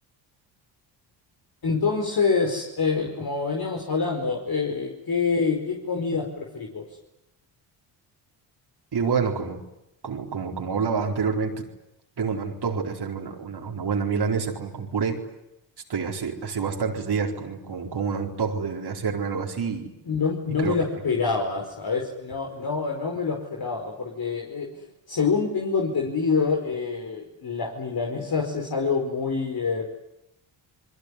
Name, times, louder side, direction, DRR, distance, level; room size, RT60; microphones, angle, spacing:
voice 1, 1.6-6.8 20.0-29.9, left 5 dB, 45° left, 0 dB, 5.1 m, -26 dB
voice 2, 8.9-9.6 10.0-11.6 12.2-15.2 15.9-19.9 20.6-20.8, right 5 dB, 50° right, 2 dB, 4.3 m, -27 dB
28.0 x 21.5 x 9.8 m, 0.86 s
supercardioid pair, 55°, 50 cm